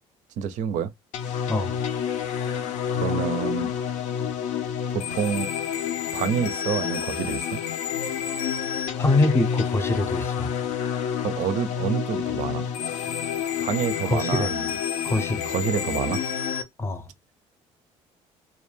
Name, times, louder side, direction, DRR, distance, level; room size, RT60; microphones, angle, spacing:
voice 1, 0.4-0.9 3.0-3.7 4.9-5.5 6.1-7.6 11.2-12.6 13.6-14.7 15.5-16.2, right 8 dB, 75° right, 0.4 m, -27 dB
sound 1, 1.1-16.6, left 8 dB, 70° left, 0.5 m, -29 dB
voice 2, 9.0-10.5 14.0-14.5 15.0-15.5 16.8-17.1, left 2 dB, 20° left, 0.6 m, -24 dB
2.2 x 2.2 x 3.1 m
cardioid pair, 100°, 13 cm